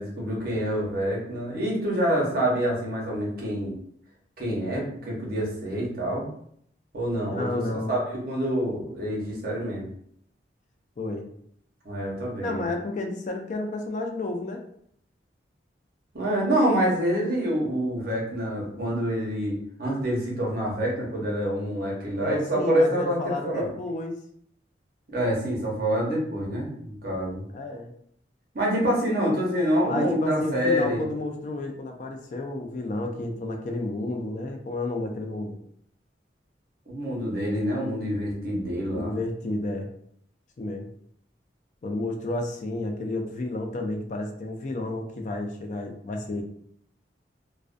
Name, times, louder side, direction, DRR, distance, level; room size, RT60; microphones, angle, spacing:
voice 1, 0.0-3.7 4.4-6.3 6.9-7.6 7.9-9.9 11.8-12.6 16.1-23.7 25.1-27.4 28.5-31.0 36.9-39.1, equal, 55° right, -3 dB, 0.8 m, -26 dB
voice 2, 7.3-8.0 11.0-11.3 12.4-14.6 22.2-24.2 27.5-27.9 29.9-35.6 38.7-39.9 40.6-40.9 41.8-46.4, left 2 dB, 45° left, 3 dB, 0.3 m, -31 dB
2.4 x 2.1 x 2.4 m, 0.67 s
head